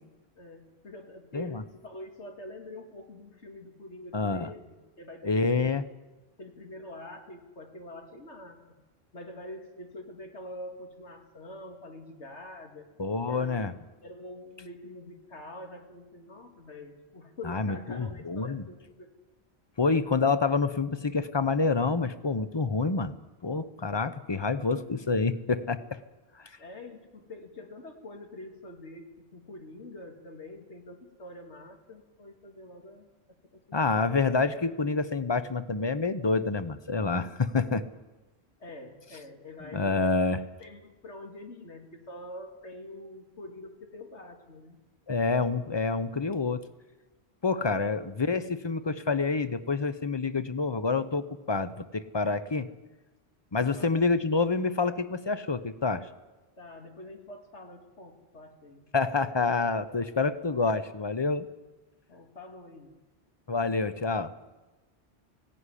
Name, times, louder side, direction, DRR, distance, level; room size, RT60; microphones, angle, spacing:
voice 1, 0.4-5.7 6.4-8.6 9.1-12.9 13.3-13.6 14.0-19.1 26.6-33.1 33.5-34.2 38.6-40.2 40.6-44.8 47.8-47.9 53.6-53.9 56.6-58.8 62.1-63.0, left 1 dB, 85° left, 4 dB, 2.7 m, -45 dB
voice 2, 4.1-4.5 5.2-5.8 13.0-13.7 17.4-18.6 19.8-23.1 23.4-26.0 33.7-37.9 39.6-40.4 45.1-46.6 47.4-52.7 53.5-56.1 58.9-61.5 63.5-64.3, left 4 dB, 25° left, 13 dB, 0.7 m, -27 dB
16.5 x 16.5 x 10.0 m, 1.2 s
omnidirectional pair, 1.1 m